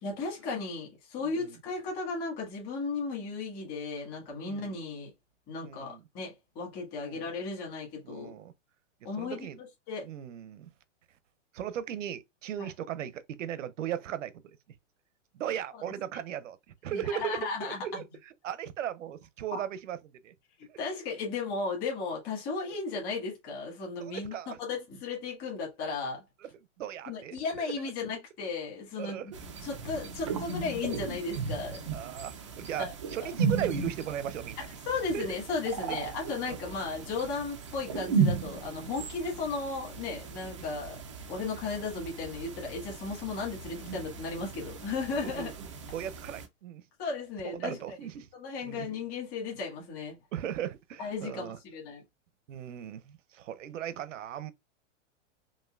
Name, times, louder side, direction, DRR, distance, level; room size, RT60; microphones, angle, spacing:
voice 1, 0.0-5.1 5.5-8.3 9.0-10.1 12.6-12.7 16.9-17.8 19.5-19.6 20.6-26.2 27.1-31.8 32.8-32.9 33.2-33.3 34.9-41.0 41.3-45.5 47.0-48.0 48.3-50.2 51.0-52.0, left 4 dB, 25° left, 1.9 m, -35 dB
voice 2, 4.4-4.8 5.6-6.0 7.0-7.2 8.0-8.5 9.2-9.6 10.0-10.7 11.5-14.6 15.3-16.6 16.8-20.0 20.2-20.3 20.7-20.8 22.7-22.8 24.0-24.6 26.4-26.5 26.8-27.7 29.0-29.4 31.9-34.6 35.1-35.4 35.9-36.0 36.5-36.6 38.4-38.8 40.4-40.6 45.2-46.8 47.4-48.3 48.6-48.9 50.3-51.6 52.5-54.5, right 10 dB, 85° right, 0.8 m, -37 dB
sound 1, 29.3-46.5, right 5 dB, 25° right, 0.4 m, -36 dB
5.5 x 2.7 x 2.4 m
supercardioid pair, 175°, 37 cm